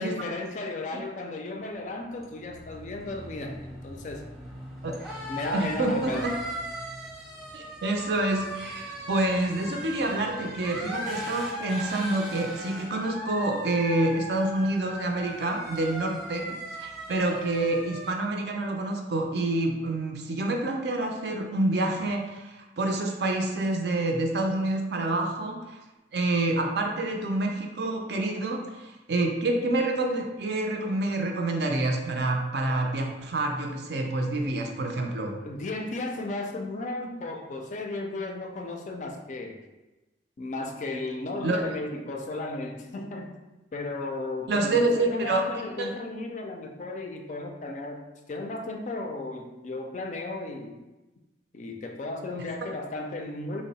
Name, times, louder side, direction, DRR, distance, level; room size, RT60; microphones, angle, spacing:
voice 1, 0.0-4.2 5.3-6.3 35.4-39.6 40.4-43.3 43.7-50.8 51.5-53.6, left 2 dB, 40° left, 3 dB, 0.3 m, -35 dB
sound 1, 1.7-18.1, equal, ahead, 0.7 m, -38 dB
voice 2, 5.5-6.3 7.5-25.8 26.1-35.3 41.4-41.6 44.5-45.5 45.8-45.9, right 2 dB, 60° right, 2 dB, 0.4 m, -27 dB
3.6 x 2.0 x 4.0 m, 1.1 s
head